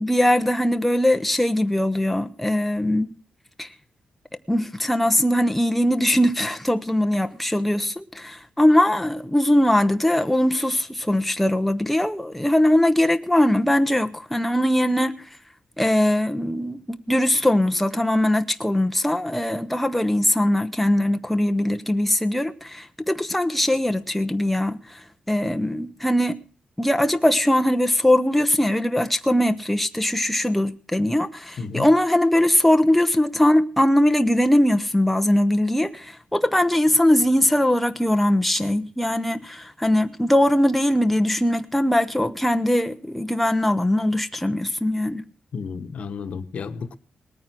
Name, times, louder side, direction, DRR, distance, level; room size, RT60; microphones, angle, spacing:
voice 1, 0.0-3.1 3.6-3.7 4.5-15.2 15.8-24.8 25.3-26.4 26.8-45.2, left 1 dB, 5° left, 0.8 m, -21 dB
voice 2, 31.6-31.9 45.5-47.0, left 5 dB, 55° left, 1.2 m, -32 dB
19.5 x 9.3 x 6.0 m
wide cardioid pair, 155°, 3 cm